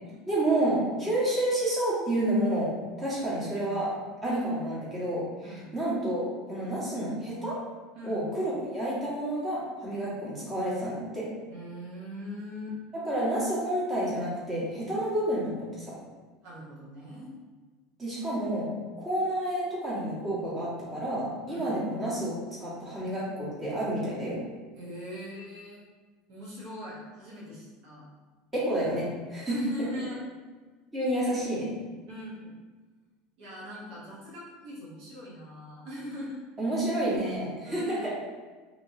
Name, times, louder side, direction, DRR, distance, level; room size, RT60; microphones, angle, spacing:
voice 1, 0.3-2.7 3.0-3.9 4.2-7.6 8.1-11.3 13.1-16.0 18.0-18.7 19.0-24.4 28.5-29.9 30.9-31.7 36.6-38.1, right 1 dB, 20° right, -8 dB, 1.4 m, -29 dB
voice 2, 5.4-5.7 7.9-8.3 11.5-12.8 16.4-17.3 21.5-21.7 24.7-25.8 26.3-28.1 29.5-30.2 31.1-31.3 32.1-32.6 33.4-36.4 37.6-38.1, equal, 65° right, -7 dB, 1.0 m, -41 dB
3.0 x 2.7 x 2.7 m, 1.4 s
supercardioid pair, 110°, 0 cm